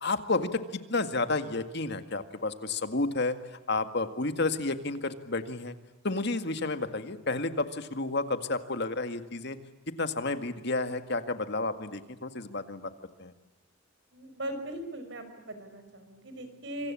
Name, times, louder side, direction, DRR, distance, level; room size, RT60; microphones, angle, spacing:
voice 1, 0.0-5.7 6.0-9.6 10.0-12.9 13.2-13.3, left 3 dB, 55° left, 9 dB, 2.0 m, -31 dB
voice 2, 14.1-16.9, right 1 dB, 60° right, 9 dB, 5.5 m, -39 dB
27.0 x 25.0 x 8.6 m, 1.0 s
head